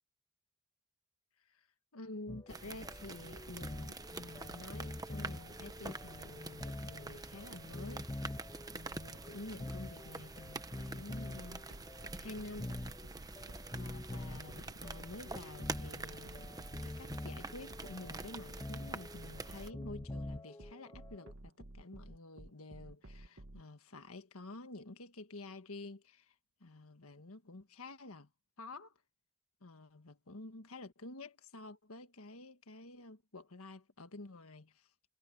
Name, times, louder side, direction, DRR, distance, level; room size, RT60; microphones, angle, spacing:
voice 1, 1.9-8.3 8.7-11.6 12.1-12.8 13.5-16.5 16.8-26.3 26.6-28.3 28.6-28.9 29.6-34.9, left 2 dB, 85° left, 1.6 m, -50 dB
sound 1, 2.3-21.3, left 1 dB, 15° left, 0.5 m, -47 dB
sound 2, 2.5-19.7, right 3 dB, 15° right, 1.0 m, -47 dB
sound 3, 11.4-23.6, right 1 dB, 60° right, 1.7 m, -52 dB
head